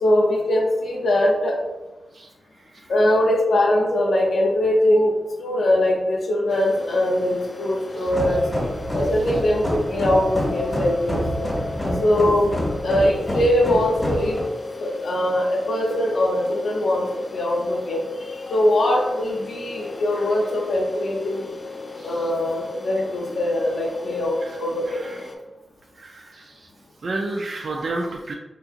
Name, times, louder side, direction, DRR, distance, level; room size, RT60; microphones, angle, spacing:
voice 1, 0.0-1.6 2.9-5.1 5.4-8.4 8.9-11.5 12.0-12.5 12.8-14.4 14.8-21.5 22.0-25.1, left 1 dB, 85° left, -4 dB, 0.6 m, -21 dB
sound 1, 6.5-25.4, left 3 dB, 35° left, 0.4 m, -36 dB
sound 2, 8.1-14.4, equal, 20° left, 1.2 m, -27 dB
voice 2, 22.0-22.3 24.4-24.5 24.9-25.2 26.0-26.7 27.0-28.3, right 2 dB, 60° right, 1 dB, 0.3 m, -31 dB
3.8 x 2.6 x 2.5 m, 1.1 s
wide cardioid pair, 105°, 0 cm